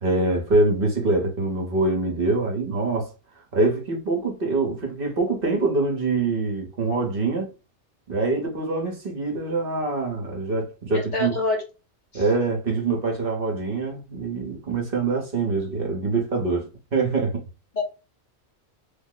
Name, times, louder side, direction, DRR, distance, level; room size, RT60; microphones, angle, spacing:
voice 1, 0.0-3.1 3.5-7.5 8.1-11.3 12.1-17.4, right 3 dB, 55° right, 1.1 m, -24 dB
voice 2, 10.9-11.6 12.1-12.3 17.7-17.8, left 3 dB, 45° left, 0.9 m, -26 dB
3.4 x 2.0 x 3.6 m
omnidirectional pair, 1.2 m